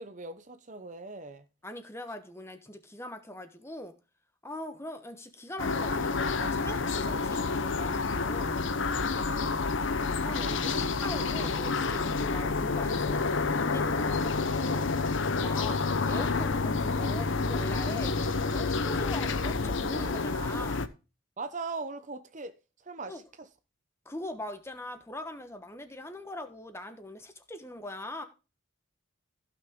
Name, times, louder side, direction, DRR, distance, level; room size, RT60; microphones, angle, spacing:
voice 1, 0.0-1.4 10.4-10.7 21.4-22.5 22.8-23.5, right 3 dB, 35° right, 0.7 m, -40 dB
voice 2, 1.6-3.9 4.4-8.6 10.2-14.9 15.4-15.8 16.1-18.1 18.5-20.9 23.1-23.2 24.0-28.2, left 1 dB, 10° left, 1.1 m, -42 dB
sound 1, 5.6-20.9, left 4 dB, 65° left, 0.8 m, -29 dB
15.0 x 6.0 x 3.7 m
head